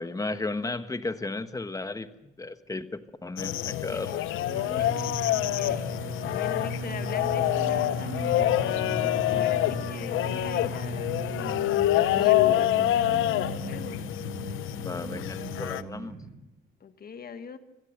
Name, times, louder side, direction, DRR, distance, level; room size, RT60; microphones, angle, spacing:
voice 1, 0.0-2.1 2.4-4.2 4.6-4.9 14.8-16.1, left 2 dB, 15° left, 11 dB, 1.3 m, -34 dB
sound 1, 3.4-15.8, left 13 dB, 85° left, 0.8 m, -27 dB
voice 2, 3.9-4.3 4.8-5.2 5.6-6.0 6.3-11.2 11.9-14.0 16.8-17.6, left 6 dB, 50° left, 10 dB, 1.6 m, -41 dB
sound 2, 4.4-16.4, right 3 dB, 65° right, 5.3 m, -38 dB
sound 3, 10.4-15.1 15.4-15.5, left 8 dB, 70° left, 4.9 m, -52 dB
25.5 x 15.5 x 6.6 m, 0.91 s
cardioid pair, 90°, 20 cm